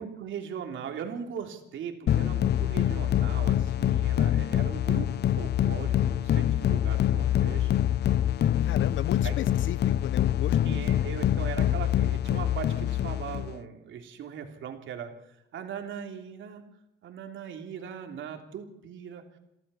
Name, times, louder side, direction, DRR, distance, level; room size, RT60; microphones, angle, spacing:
voice 1, 0.0-7.7 9.2-9.3 10.6-16.6 17.0-19.4, right 7 dB, 75° right, 4 dB, 3.3 m, -39 dB
sound 1, 2.1-13.6, left 11 dB, 55° left, 0.6 m, -25 dB
voice 2, 6.9-7.4 8.6-10.8 11.2-11.3, left 11 dB, 75° left, 17 dB, 1.0 m, -36 dB
27.5 x 13.5 x 7.1 m, 0.85 s
cardioid pair, 90°, 20 cm